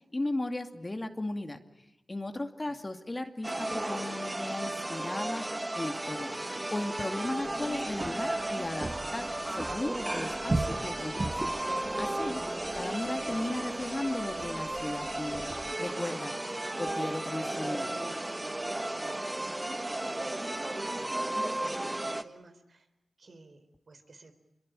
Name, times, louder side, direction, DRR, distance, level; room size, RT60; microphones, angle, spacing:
voice 1, 0.1-1.6 2.1-5.4 5.7-11.5 12.0-15.5 15.8-18.0, left 2 dB, 30° left, 6 dB, 2.3 m, -36 dB
voice 2, 2.3-2.8 18.9-22.9 23.2-24.3, right 3 dB, 65° right, 8 dB, 3.9 m, -56 dB
sound 1, 3.4-22.2, right 1 dB, 25° right, 1.5 m, -34 dB
sound 2, 7.4-15.7, right 2 dB, 45° right, 1.6 m, -39 dB
26.5 x 22.5 x 8.9 m, 0.92 s
cardioid pair, 50°, 0 cm